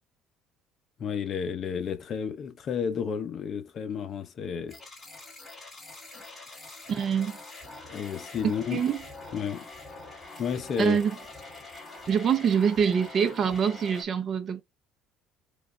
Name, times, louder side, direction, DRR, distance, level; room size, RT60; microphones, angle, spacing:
voice 1, 1.0-4.8 7.9-8.8 9.3-9.7 10.4-11.0, left 7 dB, 40° left, 0.7 m, -31 dB
sound 1, 4.7-14.0, left 2 dB, 5° left, 2.3 m, -45 dB
voice 2, 6.9-7.4 8.7-9.0 10.8-11.1 12.1-14.6, right 7 dB, 40° right, 0.7 m, -25 dB
4.9 x 2.4 x 3.1 m
cardioid pair, 135°, 0 cm